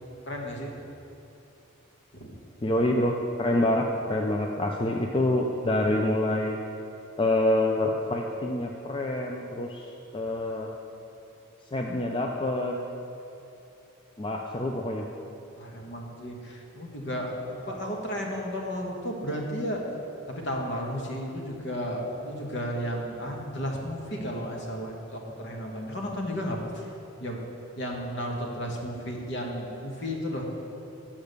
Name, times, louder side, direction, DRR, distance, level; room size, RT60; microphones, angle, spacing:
voice 1, 0.3-0.7 2.1-2.3 15.5-19.8 20.3-26.9 27.2-27.4 27.8-30.4, equal, 55° left, 0 dB, 1.3 m, -33 dB
voice 2, 2.6-6.6 7.2-10.7 11.7-12.8 14.2-15.1, left 1 dB, 25° left, 1 dB, 0.4 m, -26 dB
8.6 x 5.8 x 6.6 m, 2.9 s
head